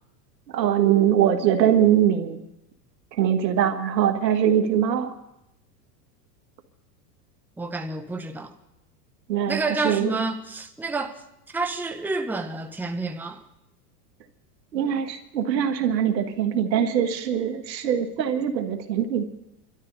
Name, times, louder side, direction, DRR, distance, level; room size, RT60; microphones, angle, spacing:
voice 1, 0.5-2.4 3.2-5.1 9.3-10.2 14.7-19.2, right 9 dB, 85° right, 1.9 m, -22 dB
voice 2, 7.6-8.5 9.5-13.4, right 3 dB, 5° right, 0.9 m, -29 dB
28.0 x 12.5 x 4.0 m
supercardioid pair, 115°, 49 cm